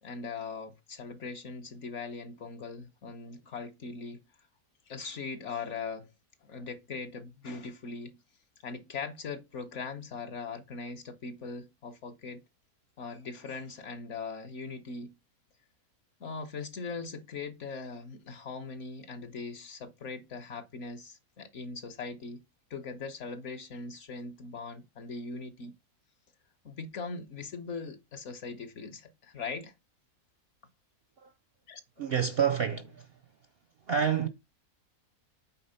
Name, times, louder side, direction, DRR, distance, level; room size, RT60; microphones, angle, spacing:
voice 1, 0.0-4.2 4.9-6.1 6.4-8.2 8.6-12.4 13.0-15.2 16.2-22.4 22.7-25.8 26.6-29.7 31.7-31.8, left 4 dB, 55° left, 1.1 m, -40 dB
voice 2, 32.0-33.1 33.9-34.3, right 7 dB, 60° right, 0.6 m, -28 dB
8.6 x 3.6 x 5.5 m
omnidirectional pair, 1.6 m